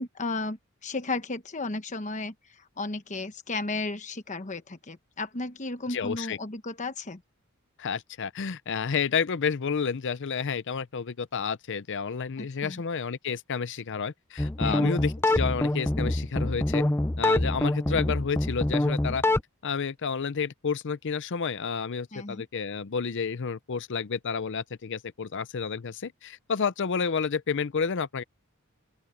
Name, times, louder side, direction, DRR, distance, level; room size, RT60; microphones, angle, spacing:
voice 1, 0.0-7.2 12.4-12.8 14.6-15.0 22.1-22.4, left 3 dB, 35° left, 1.1 m, -34 dB
voice 2, 5.9-6.4 7.8-16.9 17.2-19.2 19.6-28.2, left 6 dB, 55° left, 0.6 m, -30 dB
sound 1, 14.4-19.4, left 1 dB, 10° left, 0.6 m, -26 dB
open air
head